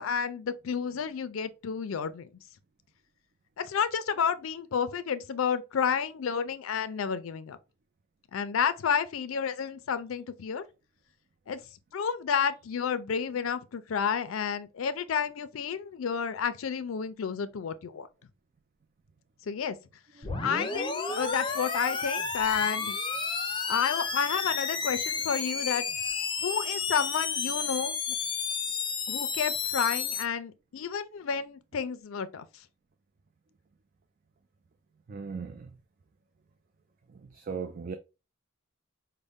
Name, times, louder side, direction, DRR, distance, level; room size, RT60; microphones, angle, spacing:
voice 1, 0.0-2.3 3.6-7.6 8.3-10.6 11.5-11.6 11.9-18.1 19.5-19.8 20.4-23.0 23.7-25.8 26.4-28.2 29.1-32.5, left 7 dB, 80° left, 0.4 m, -30 dB
sound 1, 20.2-30.2, left 5 dB, 25° left, 0.6 m, -31 dB
voice 2, 35.1-35.7 37.3-38.0, right 5 dB, 45° right, 0.4 m, -38 dB
5.2 x 2.1 x 3.4 m
head